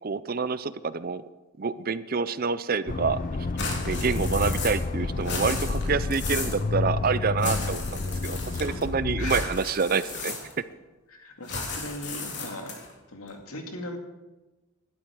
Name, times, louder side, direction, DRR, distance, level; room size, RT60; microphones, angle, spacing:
voice 1, 0.0-1.2 1.6-3.2 3.8-10.3, right 5 dB, 40° right, 15 dB, 0.5 m, -27 dB
Accelerating revving vroom, 2.9-9.5, left 3 dB, 40° left, 0.5 m, -30 dB
sound 1, 3.6-4.9 5.2-6.6 7.4-8.8 9.2-10.7 11.4-12.9, left 4 dB, 55° left, 3.3 m, -35 dB
sound 2, 5.0-9.1, equal, 5° right, 5.8 m, -49 dB
voice 2, 9.2-9.6 11.1-12.7 13.1-14.0, left 1 dB, 85° left, 3 dB, 2.4 m, -38 dB
18.0 x 12.0 x 4.7 m, 1.1 s
head